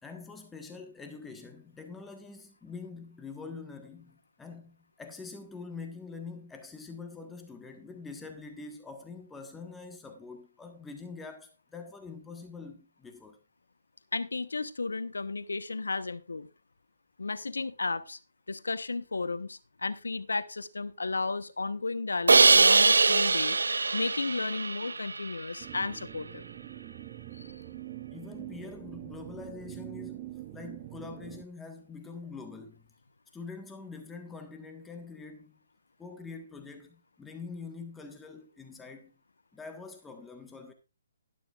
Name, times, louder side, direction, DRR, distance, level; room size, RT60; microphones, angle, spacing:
voice 1, 0.0-13.4 28.1-32.9 33.3-35.6 36.0-39.1 39.5-40.7, left 4 dB, 10° left, 1.5 m, -45 dB
voice 2, 14.1-16.5 17.2-18.2 18.5-23.6 23.9-26.5 27.3-27.5, left 3 dB, 85° left, 1.0 m, -33 dB
Crash cymbal, 22.3-25.3, right 4 dB, 85° right, 0.4 m, -22 dB
sound 1, 25.6-31.4, right 15 dB, 35° right, 1.0 m, -44 dB
12.0 x 12.0 x 2.5 m
hypercardioid pair, 145°, 0 cm